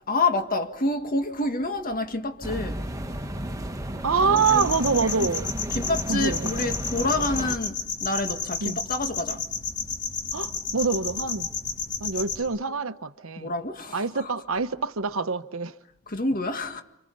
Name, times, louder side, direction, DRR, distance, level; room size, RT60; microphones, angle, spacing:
voice 1, 0.1-2.8 5.7-9.5 13.4-14.3 16.1-16.8, left 2 dB, 45° left, 1.8 m, -28 dB
sound 1, 2.4-7.6, right 1 dB, 15° right, 1.4 m, -32 dB
voice 2, 4.0-5.5 6.1-6.7 8.6-8.8 10.3-11.5 12.0-13.5 13.9-15.8, right 5 dB, 75° right, 1.0 m, -26 dB
sound 2, 4.4-12.4, left 5 dB, 60° left, 3.7 m, -32 dB
29.5 x 25.5 x 5.5 m
head